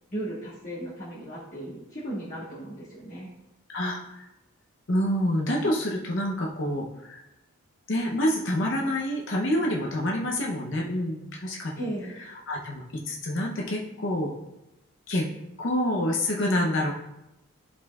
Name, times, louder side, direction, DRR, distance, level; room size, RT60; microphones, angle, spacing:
voice 1, 0.1-3.3 11.8-12.1, right 1 dB, 35° left, -10 dB, 1.3 m, -36 dB
voice 2, 3.7-4.3 4.9-7.2 7.9-11.7 12.5-14.3 15.1-15.3 15.6-16.9, left 1 dB, 55° left, -1 dB, 0.7 m, -27 dB
11.0 x 4.2 x 2.3 m, 0.92 s
head